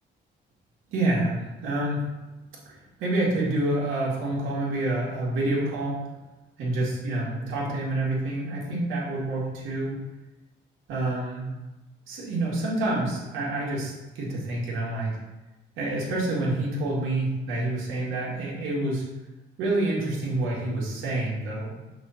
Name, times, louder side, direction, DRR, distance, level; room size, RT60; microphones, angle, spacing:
voice 1, 0.9-2.1 2.7-6.0 6.6-10.0 10.9-11.5 12.1-15.1 15.8-19.0 19.6-21.8, right 2 dB, 85° right, -5 dB, 2.0 m, -28 dB
6.0 x 3.4 x 5.7 m, 1.1 s
cardioid pair, 90°, 20 cm